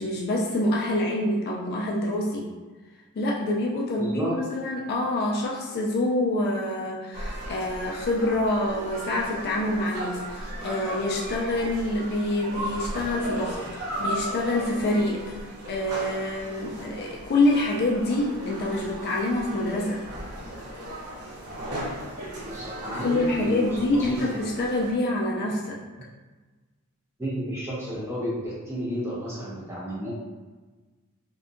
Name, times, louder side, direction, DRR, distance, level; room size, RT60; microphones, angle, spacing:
voice 1, 0.0-2.5 3.1-15.2 15.7-20.0 23.0-25.8, left 1 dB, 45° left, -2 dB, 0.3 m, -26 dB
voice 2, 3.9-4.4 22.4-24.3 27.2-30.1, equal, 10° right, -9 dB, 0.8 m, -32 dB
sound 1, 7.1-24.9, right 1 dB, 80° right, 0.7 m, -36 dB
2.6 x 2.1 x 2.4 m, 1.3 s
head